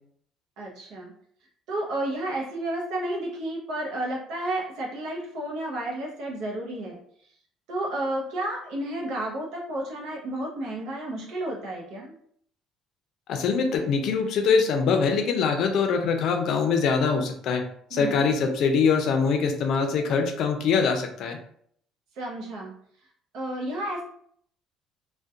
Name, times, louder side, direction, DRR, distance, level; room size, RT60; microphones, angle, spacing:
voice 1, 0.6-1.1 1.7-7.0 7.7-12.1 17.9-18.3 22.2-22.7 23.3-24.0, right 1 dB, 75° right, -2 dB, 0.6 m, -31 dB
voice 2, 13.3-17.6 17.9-21.4, left 5 dB, 65° left, 5 dB, 0.4 m, -23 dB
2.3 x 2.1 x 2.6 m, 0.65 s
cardioid pair, 115°, 0 cm